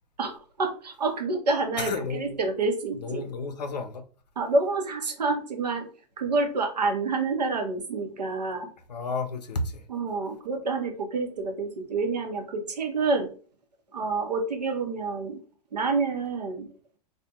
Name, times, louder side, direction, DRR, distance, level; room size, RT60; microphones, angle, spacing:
voice 1, 0.2-3.3 4.4-5.9 6.2-8.7 9.9-13.3 13.9-15.4 15.7-16.7, right 3 dB, 80° right, 0.6 m, -28 dB
voice 2, 1.8-2.3 3.0-4.0 8.9-9.8, left 3 dB, 80° left, 0.5 m, -32 dB
2.4 x 2.1 x 2.8 m
figure-of-eight pair, 95°, 21 cm